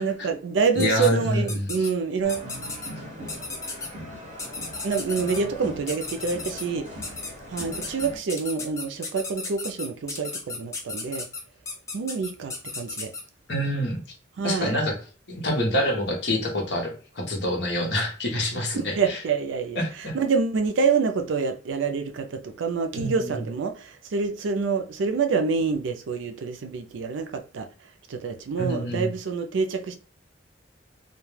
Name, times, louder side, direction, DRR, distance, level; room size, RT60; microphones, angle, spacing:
voice 1, 0.0-2.5 4.8-6.8 7.5-11.2 11.9-13.1 14.4-14.7 18.7-27.7 28.1-30.0, right 5 dB, 75° right, 0.4 m, -27 dB
voice 2, 0.7-1.9 13.5-14.0 14.4-14.9 15.3-19.2 19.8-20.1 22.9-23.3 28.6-29.1, left 1 dB, 60° left, 0.8 m, -26 dB
sound 1, 0.8-1.1 1.5-1.9 2.3-2.9 3.3-3.9 4.4-5.4 5.9-6.6 7.0-7.3 7.6-13.2, left 3 dB, 15° left, 0.4 m, -34 dB
sound 2, 2.2-8.2, equal, 35° right, 1.0 m, -40 dB
2.2 x 2.2 x 3.1 m
head